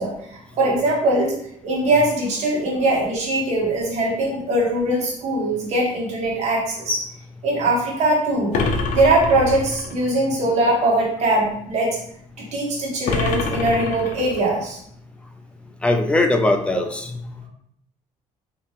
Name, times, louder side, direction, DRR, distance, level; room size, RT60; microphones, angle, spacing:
voice 1, 0.0-1.4 1.6-7.1 7.4-8.5 8.9-12.0 12.4-14.8, right 1 dB, 60° right, -2 dB, 1.3 m, -21 dB
sound 1, 8.5-10.0 13.1-14.6, left 3 dB, 75° left, 0.7 m, -25 dB
voice 2, 15.8-17.2, left 2 dB, 10° left, 4 dB, 0.4 m, -20 dB
4.1 x 2.9 x 3.6 m, 0.70 s
cardioid pair, 160°, 13 cm